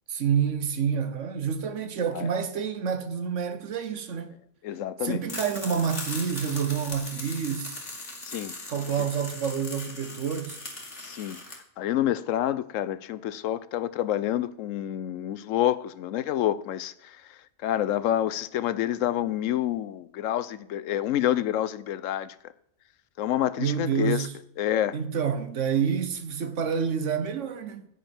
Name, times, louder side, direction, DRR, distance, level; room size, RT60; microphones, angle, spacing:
voice 1, 0.1-4.3 5.0-7.8 8.7-10.6 23.6-24.3 24.9-27.9, right 7 dB, 75° right, 1.3 m, -28 dB
voice 2, 4.6-5.3 8.2-8.5 9.0-9.1 11.0-22.4 23.2-24.3 24.6-25.0, left 12 dB, 85° left, 1.0 m, -28 dB
sound 1, 5.3-11.6, left 2 dB, 65° left, 2.4 m, -39 dB
10.0 x 9.3 x 4.5 m
omnidirectional pair, 1.3 m